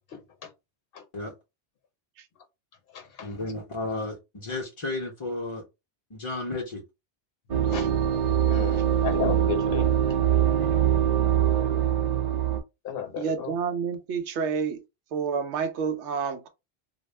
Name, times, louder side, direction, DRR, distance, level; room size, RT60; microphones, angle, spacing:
voice 1, 3.2-5.6 6.1-6.8, left 2 dB, 35° left, 0.6 m, -33 dB
sound 1, 7.5-12.6, right 10 dB, 55° right, 0.4 m, -23 dB
voice 2, 8.5-9.9 12.8-13.5, left 8 dB, 60° left, 0.9 m, -32 dB
voice 3, 13.2-14.8 15.1-16.5, right 6 dB, 90° right, 0.9 m, -29 dB
2.4 x 2.1 x 3.1 m
omnidirectional pair, 1.1 m